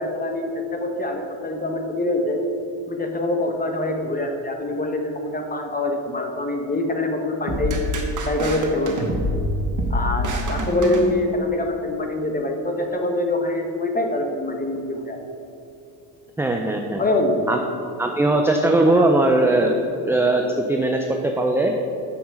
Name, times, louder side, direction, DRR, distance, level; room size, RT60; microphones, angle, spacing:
voice 1, 0.0-2.4 2.9-7.8 8.2-9.1 9.9-15.2 17.0-17.5 18.9-19.1, left 2 dB, 20° left, 3 dB, 1.2 m, -24 dB
sound 1, 7.5-11.6, equal, 40° right, 1.4 m, -26 dB
voice 2, 16.4-17.0 17.5-17.6 18.0-19.8 20.1-21.7, right 2 dB, 5° right, 2 dB, 0.4 m, -19 dB
7.2 x 5.5 x 6.3 m, 2.7 s
supercardioid pair, 95°, 49 cm